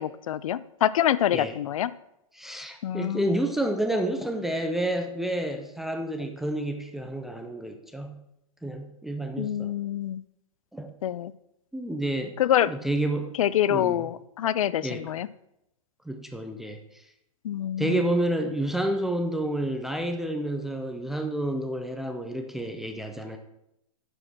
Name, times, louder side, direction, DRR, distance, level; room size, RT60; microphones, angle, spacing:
voice 1, 0.0-1.9 2.8-3.4 9.4-10.2 11.0-11.3 12.4-12.7 13.4-15.3 17.4-18.1, left 11 dB, 70° left, 18 dB, 0.5 m, -26 dB
voice 2, 2.4-8.2 8.6-9.7 10.7-10.9 11.7-12.4 12.7-13.3 13.7-14.0 14.8-15.0 16.1-16.8 17.8-23.4, right 1 dB, ahead, 4 dB, 0.4 m, -29 dB
9.7 x 5.0 x 6.0 m, 0.82 s
hypercardioid pair, 160°, 18 cm